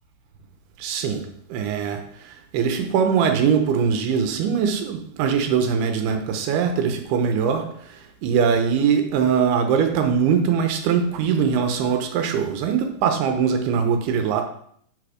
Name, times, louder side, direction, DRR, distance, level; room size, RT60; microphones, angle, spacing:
voice 1, 0.8-7.7 8.2-14.5, right 7 dB, 85° right, 6 dB, 2.8 m, -22 dB
12.0 x 4.2 x 4.9 m, 0.66 s
omnidirectional pair, 4.7 m